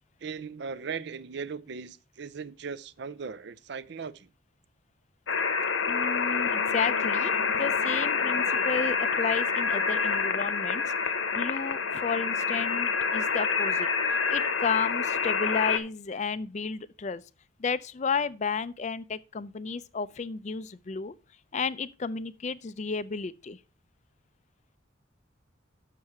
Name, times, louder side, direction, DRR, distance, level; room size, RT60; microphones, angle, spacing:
voice 1, 0.2-4.3, right 5 dB, 55° right, 0.5 m, -38 dB
sound 1, 5.3-15.8, left 5 dB, 70° left, 0.9 m, -27 dB
voice 2, 5.9-10.8 11.3-13.9 14.3-17.2 17.6-21.1 21.5-23.6, left 5 dB, 35° left, 0.4 m, -32 dB
7.2 x 6.6 x 4.7 m
head